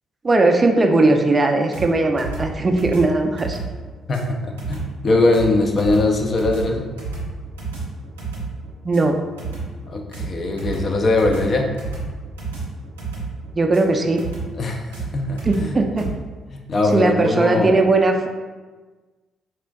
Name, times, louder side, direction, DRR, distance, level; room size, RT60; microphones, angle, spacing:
voice 1, 0.2-3.6 8.8-9.2 13.5-14.2 15.5-16.1 16.9-18.3, right 2 dB, 30° right, 4 dB, 0.4 m, -18 dB
sound 1, 1.7-16.1, right 4 dB, 90° right, 0.6 m, -31 dB
voice 2, 4.1-6.9 9.9-11.7 14.6-15.8 16.5-17.8, left 2 dB, 45° left, 2 dB, 0.4 m, -21 dB
4.3 x 2.4 x 2.2 m, 1.3 s
hypercardioid pair, 45°, 0 cm